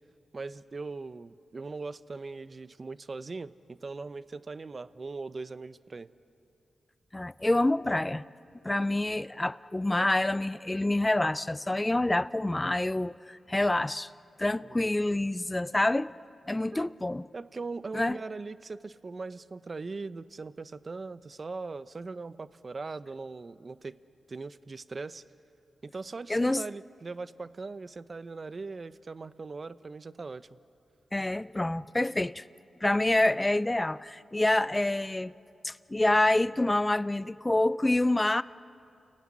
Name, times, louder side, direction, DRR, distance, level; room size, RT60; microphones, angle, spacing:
voice 1, 0.3-6.1 14.6-14.9 16.7-16.9 17.3-24.0 24.3-25.2 25.8-30.6, right 3 dB, 45° right, 0.7 m, -40 dB
voice 2, 7.1-8.2 8.6-14.1 14.4-16.1 16.4-17.3 17.9-18.2 26.3-26.7 31.1-32.4 32.8-35.3 35.6-38.4, left 2 dB, 20° left, 0.5 m, -27 dB
29.5 x 16.0 x 9.8 m
cardioid pair, 50°, 0 cm